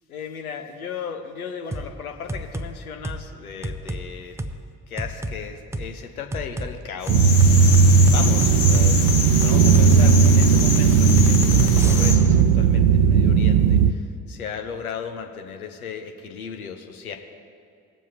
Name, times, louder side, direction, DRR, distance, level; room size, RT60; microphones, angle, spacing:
voice 1, 0.1-4.4 4.9-7.3 8.1-17.1, left 6 dB, 80° left, 5 dB, 0.8 m, -36 dB
sound 1, 1.7-1.9 2.3-2.7 3.0-3.2 3.6-4.0 4.4-4.5 5.0-5.4 5.7-5.9 6.3-6.7 7.1-12.4, right 1 dB, 5° right, 0.5 m, -30 dB
sound 2, 7.0-12.1, left 5 dB, 55° left, 1.4 m, -27 dB
sound 3, 7.1-13.9, right 5 dB, 65° right, 0.6 m, -16 dB
19.0 x 7.2 x 2.8 m, 2.4 s
figure-of-eight pair, 45°, 43 cm